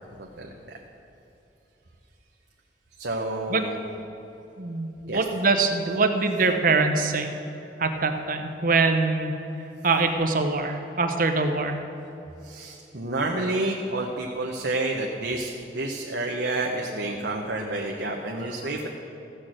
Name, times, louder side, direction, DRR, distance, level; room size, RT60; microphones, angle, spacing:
voice 1, 0.2-0.5 3.0-3.8 5.1-5.2 12.4-18.9, right 2 dB, 75° right, 0 dB, 1.0 m, -29 dB
voice 2, 4.6-7.3 7.8-9.4 9.8-11.8, right 3 dB, 50° right, 5 dB, 1.0 m, -23 dB
14.5 x 6.5 x 7.7 m, 3.0 s
head